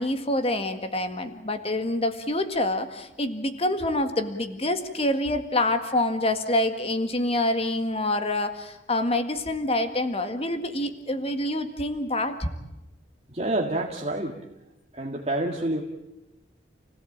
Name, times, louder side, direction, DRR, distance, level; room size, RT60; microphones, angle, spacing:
voice 1, 0.0-12.5, left 1 dB, 30° left, 8 dB, 1.9 m, -26 dB
voice 2, 13.3-14.4 14.9-15.8, right 1 dB, 35° right, -1 dB, 2.1 m, -28 dB
29.5 x 17.0 x 8.7 m, 0.94 s
head